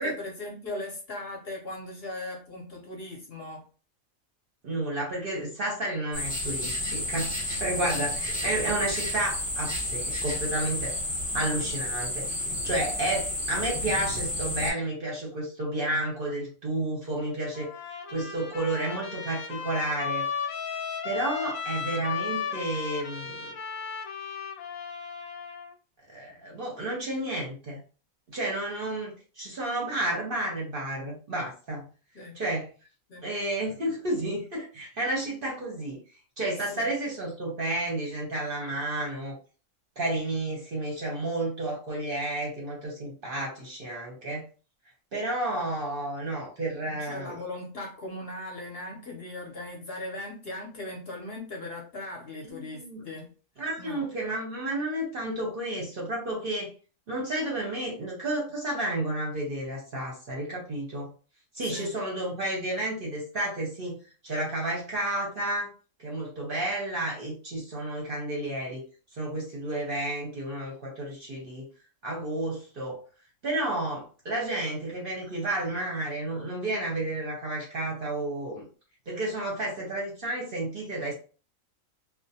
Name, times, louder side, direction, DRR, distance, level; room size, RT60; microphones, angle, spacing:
voice 1, 0.0-3.6 7.8-8.1 32.1-32.3 33.1-33.3 36.7-36.9 46.8-53.3 53.8-54.0 61.7-61.9, left 2 dB, 55° left, -1 dB, 0.7 m, -39 dB
voice 2, 4.6-10.9 11.3-12.3 12.6-17.7 18.1-20.3 21.0-23.5 26.1-27.8 28.3-31.8 32.3-32.7 33.2-36.0 36.4-39.4 40.0-44.4 45.1-47.4 52.5-53.0 53.6-56.7 57.1-61.1 61.5-64.0 64.2-65.7 66.0-68.8 69.2-71.6 72.0-73.0 73.4-78.7 79.1-81.1, right 1 dB, 50° right, -2 dB, 0.7 m, -31 dB
sound 1, 6.1-14.7, left 1 dB, 5° left, 0.8 m, -31 dB
Trumpet, 17.5-25.7, left 6 dB, 90° left, 1.0 m, -35 dB
2.4 x 2.0 x 2.7 m, 0.37 s
omnidirectional pair, 1.4 m